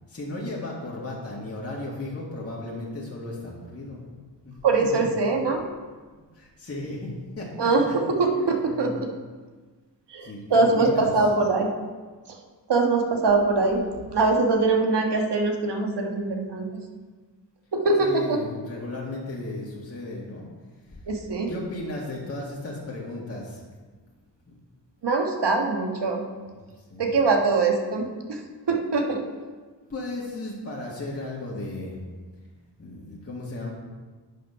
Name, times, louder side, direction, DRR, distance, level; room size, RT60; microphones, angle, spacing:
voice 1, 0.1-4.0 4.4-5.1 6.3-8.0 8.6-9.0 10.2-11.2 18.0-20.5 20.8-21.0 21.5-23.6 26.6-27.1 29.9-32.0 32.8-33.7, left 2 dB, 35° left, -4 dB, 1.8 m, -35 dB
voice 2, 4.6-5.6 7.6-9.1 10.1-11.7 12.3-12.4 12.7-13.8 14.1-16.7 17.7-18.4 21.1-21.5 25.0-26.2 27.0-28.4 28.7-29.2, right 3 dB, 70° right, 2 dB, 1.4 m, -23 dB
8.8 x 5.5 x 5.6 m, 1.4 s
cardioid pair, 75°, 42 cm